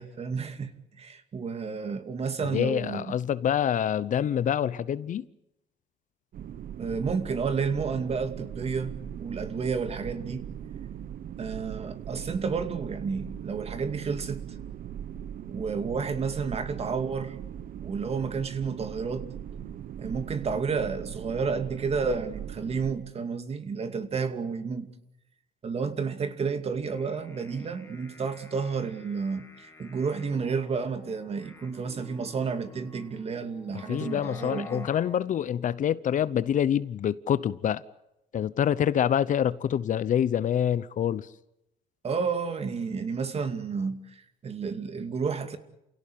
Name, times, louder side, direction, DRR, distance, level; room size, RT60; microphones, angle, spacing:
voice 1, 0.0-3.2 6.8-8.9 9.2-10.5 11.4-14.4 15.5-17.4 17.8-19.3 20.0-24.9 25.6-34.9 42.0-45.6, right 5 dB, 35° right, 2.5 m, -31 dB
voice 2, 2.5-5.2 33.9-37.8 38.3-41.3, left 9 dB, 50° left, 0.8 m, -26 dB
sound 1, 6.3-23.0, right 9 dB, 55° right, 1.2 m, -39 dB
sound 2, 26.7-35.2, left 2 dB, 15° left, 2.4 m, -50 dB
29.0 x 17.0 x 8.7 m
cardioid pair, 110°, 17 cm